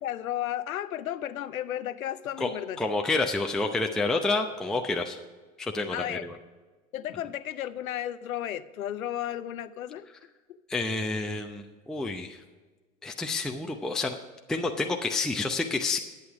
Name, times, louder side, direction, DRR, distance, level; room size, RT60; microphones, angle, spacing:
voice 1, 0.0-2.9 5.9-6.2 6.9-10.1, left 12 dB, 90° left, 15 dB, 0.6 m, -33 dB
voice 2, 2.8-5.2 5.6-6.4 10.7-12.4 13.0-14.2 14.5-16.0, left 3 dB, ahead, 3 dB, 0.7 m, -29 dB
11.0 x 8.2 x 4.8 m, 1.3 s
hypercardioid pair, 90°, 40 cm